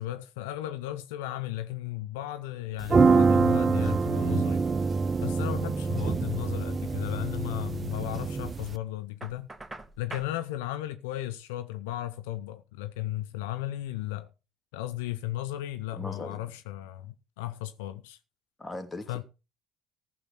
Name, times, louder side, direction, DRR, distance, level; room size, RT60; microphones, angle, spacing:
voice 1, 0.0-4.6 5.2-9.5 10.0-14.3 14.7-18.2 19.1-19.2, left 14 dB, 75° left, 0.8 m, -35 dB
sound 1, 2.8-8.7, right 4 dB, 35° right, 0.7 m, -25 dB
Knock, 9.2-10.4, right 2 dB, 10° right, 1.8 m, -43 dB
voice 2, 16.0-16.4 18.6-19.2, left 2 dB, 20° left, 2.8 m, -39 dB
14.5 x 8.0 x 4.3 m
hypercardioid pair, 55°, 0 cm